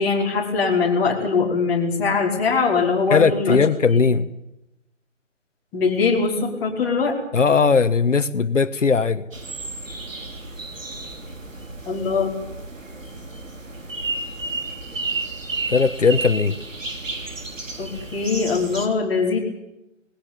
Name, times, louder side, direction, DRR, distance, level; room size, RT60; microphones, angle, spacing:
voice 1, 0.0-3.6 5.7-7.2 11.9-12.3 17.8-19.4, left 4 dB, 5° left, -5 dB, 1.9 m, -21 dB
voice 2, 3.1-4.3 7.3-9.2 15.7-16.6, left 5 dB, 75° left, 11 dB, 1.4 m, -18 dB
sound 1, 9.3-18.9, right 3 dB, 85° right, 3.5 m, -32 dB
19.5 x 17.5 x 9.3 m, 0.89 s
hypercardioid pair, 170°, 38 cm